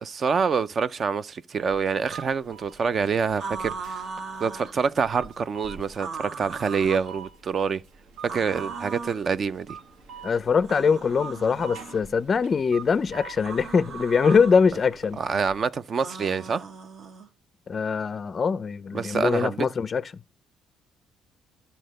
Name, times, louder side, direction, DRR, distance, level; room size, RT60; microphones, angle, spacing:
voice 1, 0.0-4.0 4.4-7.8 8.2-9.8 15.2-16.6 18.9-19.7, right 5 dB, 40° right, 0.4 m, -26 dB
sound 1, 1.7-15.6, right 6 dB, 80° right, 1.4 m, -45 dB
sound 2, 3.4-4.8 5.9-7.1 8.2-9.2 10.6-12.0 13.4-14.6 16.0-17.3, right 5 dB, 55° right, 1.1 m, -38 dB
voice 2, 10.2-15.2 17.7-20.0, left 5 dB, 35° left, 0.4 m, -23 dB
11.0 x 4.3 x 6.5 m
cardioid pair, 105°, 0 cm